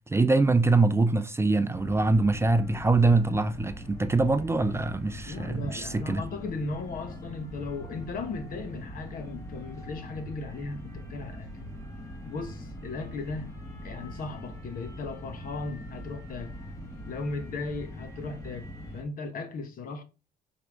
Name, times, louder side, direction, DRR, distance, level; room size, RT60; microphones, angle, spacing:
voice 1, 0.1-6.2, right 3 dB, 15° right, 0.5 m, -24 dB
sound 1, 1.7-19.0, equal, 20° left, 2.2 m, -42 dB
voice 2, 5.3-11.5 12.2-13.5 13.8-16.5 17.0-20.0, left 3 dB, 55° left, 1.4 m, -37 dB
6.8 x 4.6 x 3.8 m
cardioid pair, 110°, 17 cm